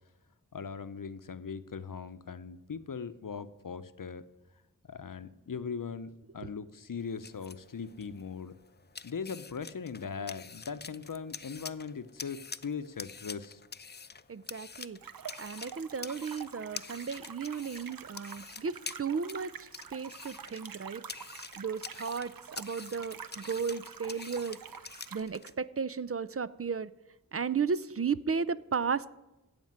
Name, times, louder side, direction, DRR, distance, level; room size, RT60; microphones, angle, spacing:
voice 1, 0.5-4.3 4.9-8.5 9.0-13.6, left 6 dB, 70° left, 13 dB, 0.7 m, -40 dB
sound 1, 7.0-25.5, left 5 dB, 30° left, 0.4 m, -47 dB
voice 2, 14.3-15.0 15.4-21.0 21.6-24.6 25.1-26.9 27.3-29.1, right 5 dB, 45° right, 17 dB, 0.4 m, -34 dB
sound 2, 15.0-25.2, right 7 dB, 85° right, 0.7 m, -47 dB
15.0 x 5.1 x 9.3 m, 1.0 s
wide cardioid pair, 50°, 34 cm